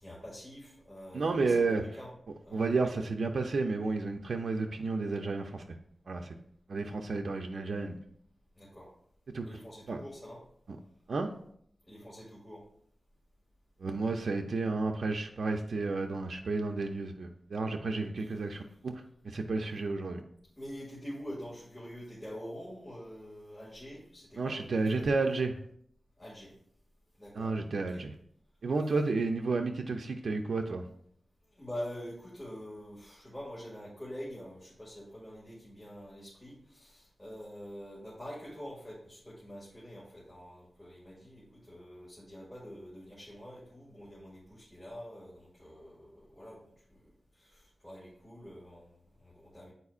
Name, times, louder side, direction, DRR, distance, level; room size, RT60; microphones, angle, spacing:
voice 1, 0.0-2.1 2.4-2.8 8.6-8.9 9.4-10.4 11.9-12.6 18.2-18.3 20.6-25.1 26.2-26.5 27.2-28.0 31.5-47.0 47.3-49.7, equal, 15° left, -7 dB, 2.0 m, -46 dB
voice 2, 1.1-1.8 2.5-5.6 6.1-6.4 6.7-8.0 9.3-9.5 9.9-10.0 11.1-11.3 13.8-18.9 19.2-20.2 24.4-25.6 27.3-28.1 28.6-30.8, right 3 dB, 75° right, 4 dB, 0.5 m, -31 dB
9.5 x 4.3 x 2.4 m, 0.67 s
wide cardioid pair, 85°, 0 cm